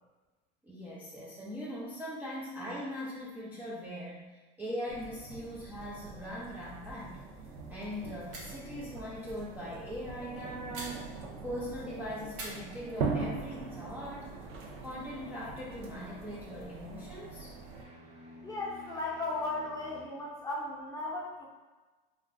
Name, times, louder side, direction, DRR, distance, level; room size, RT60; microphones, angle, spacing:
voice 1, 0.6-7.2 7.7-11.0 11.4-14.3 14.8-17.5, equal, 5° right, -7 dB, 0.3 m, -40 dB
sound 1, 4.9-17.8, right 4 dB, 85° right, 0.6 m, -41 dB
sound 2, 7.0-7.4 7.6-7.7 8.2-8.7 10.7-11.6 12.3-13.5, right 2 dB, 50° right, 0.9 m, -47 dB
sound 3, 13.3-20.0, right 1 dB, 25° right, 0.7 m, -53 dB
voice 2, 18.4-21.5, left 2 dB, 10° left, -4 dB, 0.7 m, -36 dB
2.4 x 2.2 x 3.5 m, 1.2 s
supercardioid pair, 115°, 30 cm